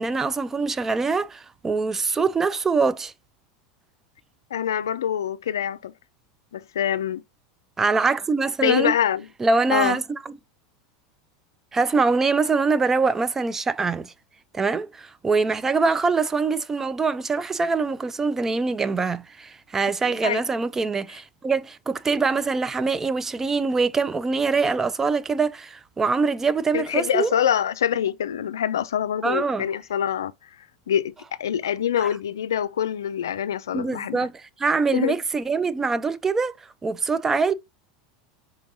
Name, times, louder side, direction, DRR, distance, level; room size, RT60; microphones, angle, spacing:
voice 1, 0.0-3.1 7.8-8.9 9.4-10.2 11.7-14.1 14.5-27.3 29.2-29.7 32.0-32.1 33.7-36.5 36.8-37.5, right 4 dB, 20° right, 0.4 m, -24 dB
voice 2, 4.5-5.9 6.5-7.2 8.6-9.3 9.7-10.0 20.2-20.4 26.7-30.3 30.9-31.1 31.4-34.2 34.9-35.1, left 9 dB, 90° left, 0.3 m, -25 dB
4.5 x 3.7 x 2.6 m
hypercardioid pair, 95°, 2 cm